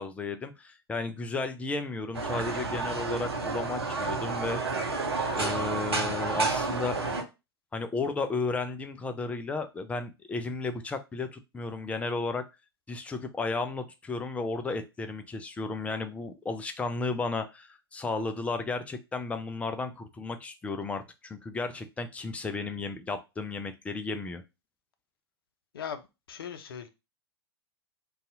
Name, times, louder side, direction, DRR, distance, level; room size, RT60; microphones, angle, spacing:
voice 1, 0.0-4.6 5.4-7.0 7.7-12.5 12.9-24.4, left 3 dB, 10° left, 0.4 m, -33 dB
sound 1, 2.1-7.2, right 3 dB, 80° right, 0.7 m, -30 dB
voice 2, 25.7-26.9, left 8 dB, 65° left, 0.6 m, -39 dB
2.6 x 2.3 x 3.8 m
figure-of-eight pair, 95°, 13 cm